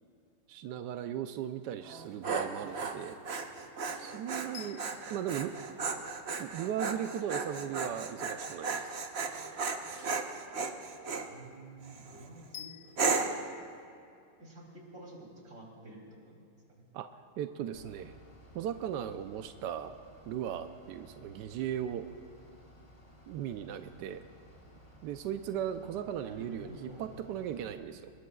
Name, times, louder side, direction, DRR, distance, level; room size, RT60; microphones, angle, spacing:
voice 1, 0.5-3.2 4.0-4.8 5.1-5.5 6.4-8.9 16.9-17.1 17.4-18.2 18.5-20.0 20.3-22.1 23.3-24.2 25.0-28.1, right 10 dB, 75° right, 8 dB, 1.0 m, -37 dB
Dog, 1.9-11.3 11.8-12.3 13.0-13.5, right 4 dB, 60° right, 0.6 m, -35 dB
sound 1, 4.5-6.7 12.5-13.3, left 10 dB, 60° left, 1.4 m, -51 dB
voice 2, 11.2-13.4 14.4-16.4 16.7-16.8 26.2-27.0, right 2 dB, 35° right, -2 dB, 3.4 m, -50 dB
Bus / Idling, 17.7-27.7, equal, 20° left, 2.0 m, -57 dB
25.5 x 21.5 x 2.3 m, 2.4 s
omnidirectional pair, 2.4 m